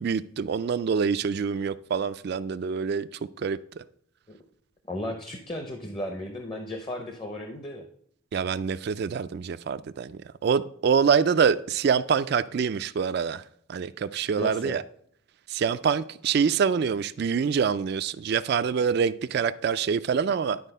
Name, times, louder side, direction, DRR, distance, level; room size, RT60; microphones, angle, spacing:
voice 1, 0.0-3.1 3.4-3.8 8.3-13.4 13.7-14.8 15.5-20.6, right 6 dB, 50° right, 0.3 m, -25 dB
voice 2, 4.9-7.9 14.4-14.7, left 1 dB, 25° left, 0.7 m, -35 dB
11.0 x 4.1 x 5.4 m
head